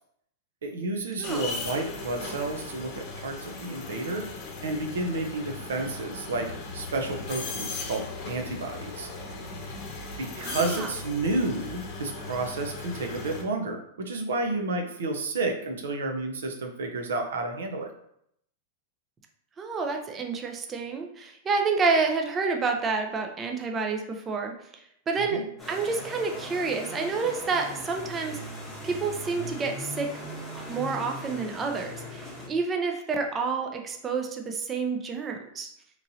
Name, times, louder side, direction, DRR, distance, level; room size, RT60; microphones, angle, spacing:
voice 1, 0.6-4.3 4.6-9.1 10.2-17.9 25.2-25.4, right 2 dB, 85° right, 4 dB, 0.6 m, -31 dB
sound 1, 1.2-13.4, left 3 dB, 50° left, 0.7 m, -38 dB
voice 2, 10.4-10.9 19.6-28.4 28.8-30.2 30.6-35.7, right 4 dB, 25° right, 3 dB, 0.4 m, -29 dB
sound 2, 25.6-32.5, left 1 dB, 10° left, 1.0 m, -39 dB
2.9 x 2.6 x 2.7 m, 0.72 s
hypercardioid pair, 125°, 0 cm